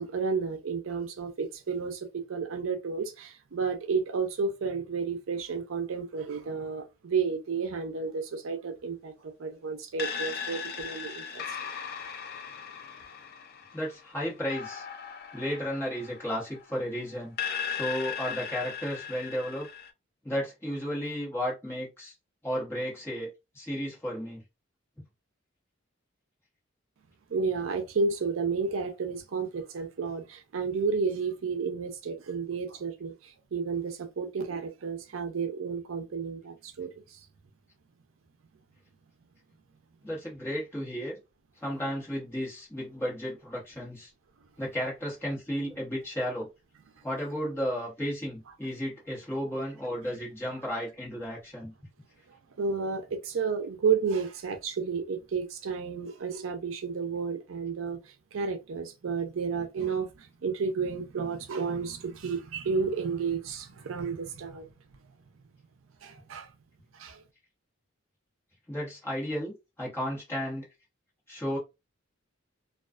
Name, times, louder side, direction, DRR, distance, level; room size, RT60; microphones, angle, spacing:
voice 1, 0.0-11.4 27.3-37.2 52.6-58.0 58.3-64.6 66.0-66.5 66.9-67.2, right 5 dB, 75° right, 0.5 m, -32 dB
sound 1, 10.0-16.8 17.4-19.9, left 7 dB, 50° left, 0.3 m, -38 dB
voice 2, 13.7-14.8 15.3-17.3 17.7-19.7 20.2-22.1 22.4-23.3 23.5-24.4 40.0-41.2 41.6-44.1 44.6-46.5 47.0-51.7 68.7-70.7 71.3-71.6, equal, 10° left, 1.1 m, -33 dB
2.3 x 2.3 x 2.3 m
head